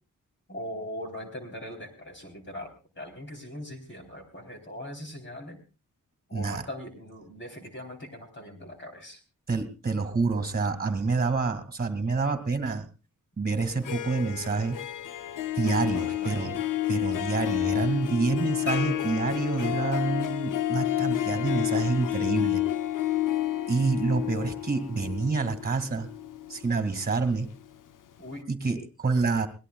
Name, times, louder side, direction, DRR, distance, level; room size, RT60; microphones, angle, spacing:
voice 1, 0.5-5.6 6.3-9.2 15.8-16.7 28.2-28.4, left 1 dB, 35° left, 4 dB, 3.6 m, -41 dB
voice 2, 6.3-6.6 9.5-12.9 13.4-14.8 15.6-16.6 16.9-22.6 23.7-26.1 26.5-27.5 28.5-29.5, right 4 dB, 30° right, 10 dB, 2.2 m, -27 dB
Harp, 13.7-27.6, left 13 dB, 70° left, 0.6 m, -30 dB
22.0 x 18.5 x 2.3 m, 0.32 s
wide cardioid pair, 105°, 33 cm